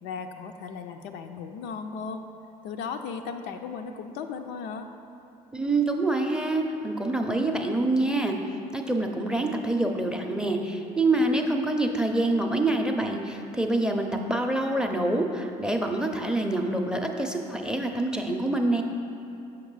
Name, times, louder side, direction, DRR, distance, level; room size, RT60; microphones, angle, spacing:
voice 1, 0.0-2.2 2.6-4.9, left 5 dB, 60° left, 6 dB, 0.4 m, -36 dB
voice 2, 5.5-8.4 8.7-18.8, right 2 dB, 5° right, 4 dB, 0.6 m, -26 dB
6.3 x 5.8 x 3.1 m, 2.9 s
hypercardioid pair, 55°, 21 cm